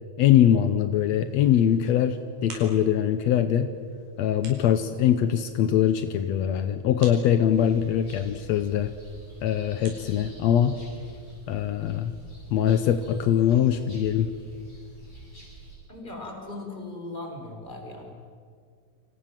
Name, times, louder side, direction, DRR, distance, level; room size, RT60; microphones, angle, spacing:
voice 1, 0.2-3.7 4.2-8.9 9.4-10.8 11.5-12.1 12.5-14.3, left 10 dB, 75° left, 10 dB, 1.6 m, -22 dB
sound 1, 1.2-11.3, right 3 dB, 70° right, 6.7 m, -51 dB
sound 2, 7.4-15.8, right 1 dB, 30° left, 8.1 m, -47 dB
voice 2, 15.9-18.1, left 2 dB, 10° left, 1 dB, 5.0 m, -38 dB
29.5 x 25.5 x 7.5 m, 2.2 s
omnidirectional pair, 4.1 m